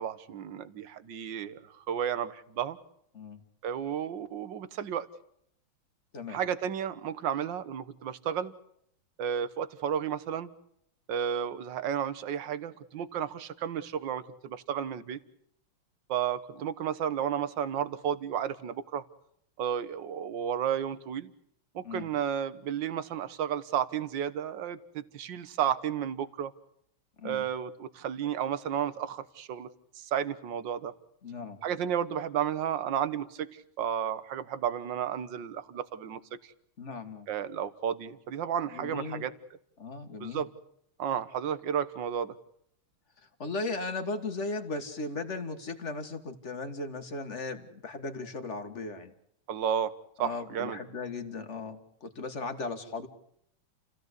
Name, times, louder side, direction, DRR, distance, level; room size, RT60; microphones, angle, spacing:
voice 1, 0.0-2.8 3.6-5.1 6.3-8.5 9.2-10.5 11.1-15.2 16.1-19.0 19.6-21.3 21.8-26.5 27.2-29.7 30.0-30.9 31.6-36.5 37.3-39.3 40.2-40.5 41.0-42.4 49.5-49.9 50.2-50.8, right 9 dB, 60° right, 14 dB, 1.7 m, -32 dB
voice 2, 31.2-31.6 36.8-37.3 38.7-39.3 39.8-40.5 43.4-49.1 50.2-53.1, left 3 dB, 35° left, 7 dB, 2.0 m, -37 dB
29.5 x 16.5 x 8.2 m, 0.71 s
omnidirectional pair, 2.4 m